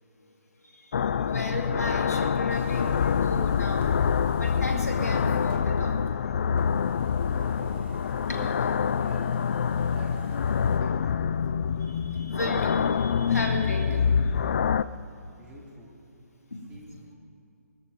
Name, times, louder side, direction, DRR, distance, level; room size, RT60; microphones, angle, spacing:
sound 1, 0.9-14.8, left 7 dB, 45° left, 0.4 m, -26 dB
voice 1, 1.3-3.9 4.4-6.0 8.3-8.4 11.8-14.0 16.5-16.6, left 1 dB, 75° left, 2 dB, 2.6 m, -34 dB
sound 2, 2.5-5.7 6.5-10.8, right 2 dB, 40° right, 2.0 m, -52 dB
voice 2, 7.2-7.9 8.3-9.3 9.9-10.2 10.8-11.3 15.4-15.9 16.7-17.1, right 1 dB, 10° right, -3 dB, 2.7 m, -47 dB
19.5 x 13.5 x 5.3 m, 2.5 s
figure-of-eight pair, 140°, 9 cm